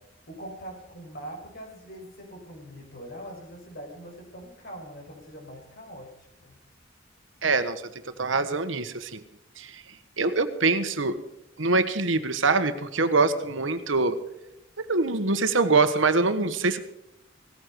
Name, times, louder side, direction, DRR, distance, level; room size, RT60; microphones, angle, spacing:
voice 1, 0.0-6.6, right 1 dB, 55° left, 1 dB, 5.5 m, -43 dB
voice 2, 7.4-9.2 9.6-9.8 10.2-11.2 11.6-14.2 14.8-16.8, right 3 dB, 80° right, 9 dB, 1.5 m, -24 dB
17.5 x 14.5 x 4.8 m, 0.84 s
head